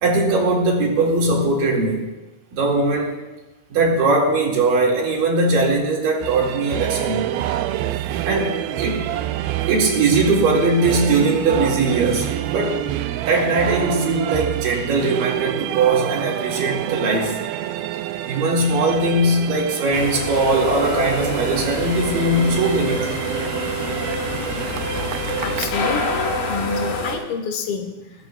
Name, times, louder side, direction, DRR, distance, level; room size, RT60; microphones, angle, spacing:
voice 1, 0.0-2.1 2.5-3.2 3.7-7.2 8.2-9.1 9.7-12.8 13.2-17.3 18.3-23.2, right 2 dB, 65° right, -2 dB, 3.6 m, -20 dB
sound 1, 6.2-25.7, right 12 dB, 90° right, 2.5 m, -27 dB
sound 2, 19.9-27.2, left 1 dB, 65° left, 3.2 m, -26 dB
voice 2, 25.4-28.3, left 5 dB, 85° left, 5 dB, 3.3 m, -28 dB
20.0 x 14.0 x 2.3 m, 1.1 s
omnidirectional pair, 4.2 m